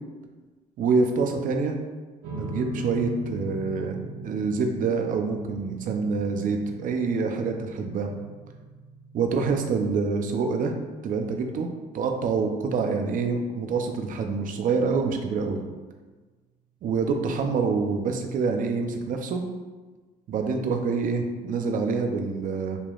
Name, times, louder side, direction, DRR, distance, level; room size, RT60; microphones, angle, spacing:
voice 1, 0.8-1.8 2.4-8.1 9.1-10.7 11.0-11.7 11.9-15.6 16.8-19.4 20.3-22.8, right 4 dB, 50° right, 4 dB, 0.6 m, -26 dB
sound 1, 2.2-14.8, right 1 dB, 75° right, 1.1 m, -42 dB
6.8 x 2.9 x 2.4 m, 1.3 s
cardioid pair, 110°, 17 cm